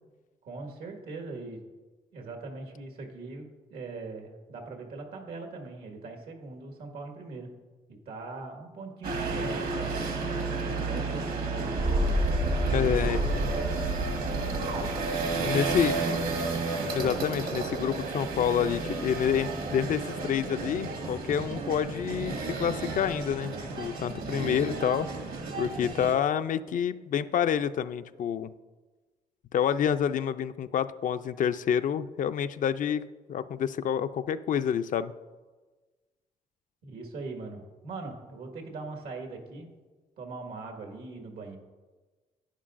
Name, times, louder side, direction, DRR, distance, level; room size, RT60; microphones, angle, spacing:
voice 1, 0.4-1.6 2.1-7.5 7.9-10.0 10.4-11.8 12.5-13.9 15.2-16.3 36.8-39.7 40.2-41.6, right 3 dB, 85° right, 2 dB, 1.7 m, -41 dB
sound 1, 9.0-26.2, right 3 dB, 70° right, 1.5 m, -32 dB
sound 2, 11.8-16.0, right 1 dB, 40° right, 0.5 m, -30 dB
voice 2, 12.7-13.2 15.4-16.0 16.9-25.1 25.6-28.5 29.5-35.1, left 8 dB, 60° left, 12 dB, 0.4 m, -28 dB
11.0 x 9.7 x 2.5 m, 1.3 s
cardioid pair, 90°, 15 cm